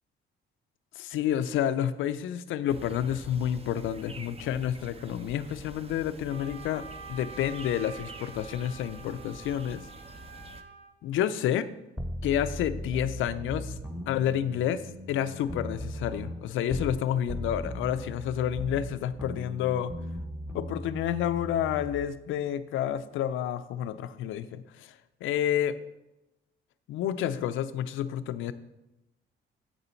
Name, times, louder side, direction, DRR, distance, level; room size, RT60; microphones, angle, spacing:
voice 1, 1.0-6.8 7.1-9.8 11.0-11.7 12.2-13.7 14.1-14.8 15.1-19.9 20.5-24.9 25.2-25.8 26.9-28.5, left 10 dB, 85° left, 13 dB, 0.5 m, -29 dB
sound 1, 2.7-10.6, right 2 dB, 30° right, 0.8 m, -47 dB
Wind instrument woodwind instrument, 6.3-10.9, right 5 dB, 70° right, 1.9 m, -47 dB
sound 2, 12.0-17.0 17.3-22.1, equal, 10° right, 1.2 m, -38 dB
7.9 x 6.9 x 4.4 m, 0.95 s
cardioid pair, 90°, 20 cm